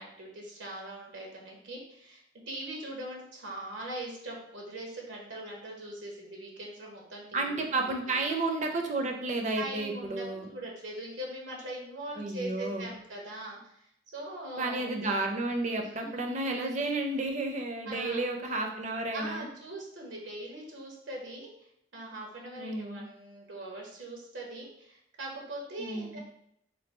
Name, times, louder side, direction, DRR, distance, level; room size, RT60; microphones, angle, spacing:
voice 1, 0.0-8.3 9.6-15.0 15.8-16.2 17.9-18.2 19.1-21.7 21.9-26.2, right 1 dB, 80° right, -1 dB, 0.9 m, -41 dB
voice 2, 7.3-10.5 12.2-12.9 14.6-19.5 22.6-23.0 25.8-26.2, right 2 dB, 40° right, 3 dB, 0.5 m, -32 dB
3.2 x 2.3 x 4.2 m, 0.75 s
head